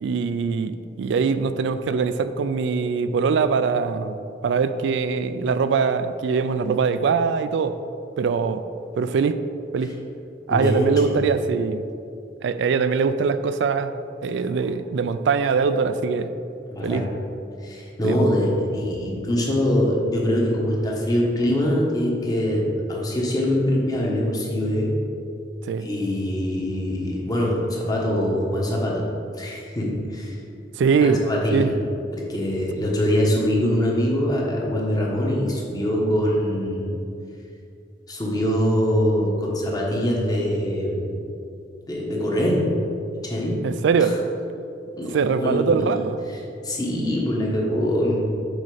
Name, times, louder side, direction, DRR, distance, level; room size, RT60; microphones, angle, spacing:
voice 1, 0.0-4.2 4.4-7.8 8.2-8.6 9.0-9.4 9.7-9.9 10.5-11.8 12.4-13.9 14.2-16.3 16.8-17.1 18.0-18.3 25.7-25.9 30.8-31.2 31.5-31.7 43.6-44.2 45.1-46.2, right 5 dB, 70° right, 11 dB, 0.3 m, -22 dB
voice 2, 10.5-11.2 16.7-17.2 17.6-24.9 25.8-29.1 29.4-30.4 31.0-31.7 32.1-37.0 38.1-41.2 41.9-42.8 43.2-43.6 44.9-46.0 46.6-48.3, equal, 20° left, -2 dB, 1.1 m, -23 dB
6.5 x 4.2 x 4.8 m, 2.6 s
head